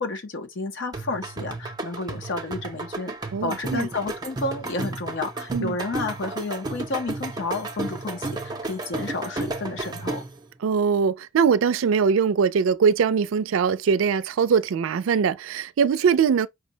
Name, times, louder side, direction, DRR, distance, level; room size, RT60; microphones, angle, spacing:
voice 1, 0.0-10.2, left 3 dB, 60° left, 0.7 m, -31 dB
sound 1, 0.9-10.4, right 2 dB, 20° right, 0.5 m, -33 dB
voice 2, 3.3-3.9 5.5-5.8 10.6-16.5, right 6 dB, 85° right, 0.4 m, -21 dB
4.9 x 2.1 x 2.7 m
head